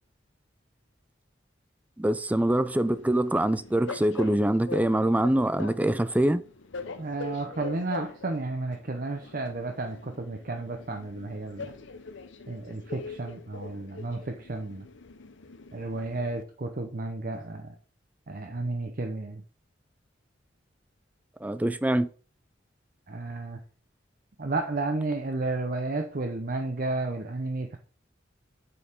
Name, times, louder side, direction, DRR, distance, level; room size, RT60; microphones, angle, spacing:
voice 1, 2.0-6.4 21.4-22.1, right 1 dB, 10° right, 0.4 m, -24 dB
Train, 2.5-16.4, left 4 dB, 85° left, 0.8 m, -43 dB
voice 2, 7.0-11.7 12.5-14.9 15.7-17.7 18.3-19.4 23.1-23.6 24.4-27.8, right 2 dB, 50° right, 0.8 m, -32 dB
8.5 x 7.0 x 3.6 m
head